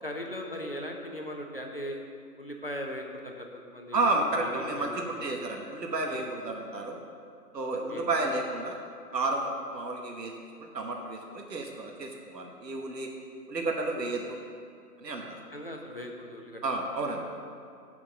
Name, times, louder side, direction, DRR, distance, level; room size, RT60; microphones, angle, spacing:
voice 1, 0.0-2.0 2.4-4.0 4.4-5.3 6.0-6.2 7.7-8.1 15.5-16.6, equal, 35° left, 1 dB, 0.7 m, -39 dB
voice 2, 3.9-7.0 7.5-8.8 9.1-10.3 10.6-13.1 13.5-14.4 15.0-15.4 16.6-17.2, right 2 dB, 80° right, 1 dB, 1.3 m, -31 dB
9.0 x 5.9 x 5.4 m, 2.3 s
hypercardioid pair, 180°, 49 cm